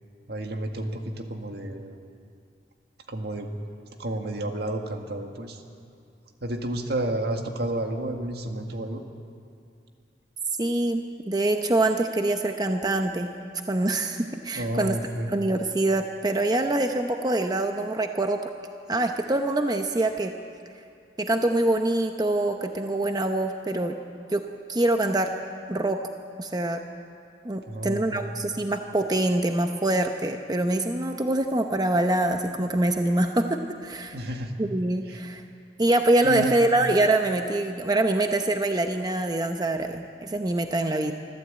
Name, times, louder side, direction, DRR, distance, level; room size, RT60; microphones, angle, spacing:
voice 1, 0.3-2.0 3.1-3.6 4.0-5.6 6.4-9.0 14.5-15.3 27.7-28.3 34.1-34.5 35.1-35.2 36.2-36.5, right 1 dB, 65° right, 4 dB, 1.9 m, -31 dB
voice 2, 10.6-13.3 13.7-14.9 15.3-18.4 18.9-20.3 21.2-24.0 24.3-25.3 25.7-26.0 26.4-26.8 27.4-34.2 34.6-35.4 35.8-41.1, right 2 dB, 25° right, 5 dB, 0.8 m, -25 dB
24.5 x 14.0 x 8.8 m, 2.4 s
head